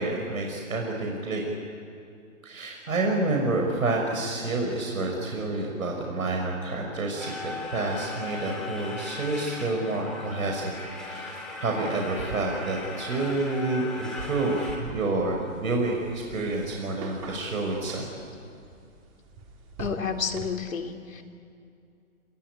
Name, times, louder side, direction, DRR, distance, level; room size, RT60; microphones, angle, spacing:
voice 1, 0.0-1.4 2.4-10.7 11.0-18.1, right 2 dB, 75° right, 0 dB, 5.9 m, -29 dB
sound 1, 7.2-14.8, left 3 dB, ahead, 3.0 m, -38 dB
sound 2, 14.8-20.5, right 4 dB, 25° right, 3.7 m, -44 dB
voice 2, 19.8-21.2, left 6 dB, 70° left, 4 dB, 3.5 m, -30 dB
29.0 x 20.5 x 9.9 m, 2.4 s
hypercardioid pair, 160°, 42 cm